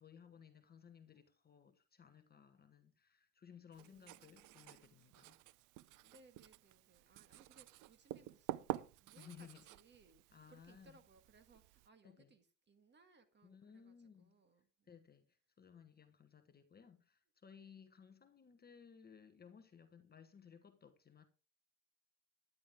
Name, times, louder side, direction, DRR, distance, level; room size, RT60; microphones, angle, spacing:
voice 1, 0.0-5.4 9.1-9.6 10.3-11.0 12.0-12.3 13.4-14.3 14.9-21.2, left 7 dB, 20° left, 1.2 m, -60 dB
voice 2, 3.7-5.1 6.0-15.0 17.6-17.7, right 3 dB, 20° right, 1.6 m, -68 dB
Writing, 3.7-11.9, right 15 dB, 40° right, 0.6 m, -49 dB
11.5 x 10.5 x 3.6 m
supercardioid pair, 120°, 47 cm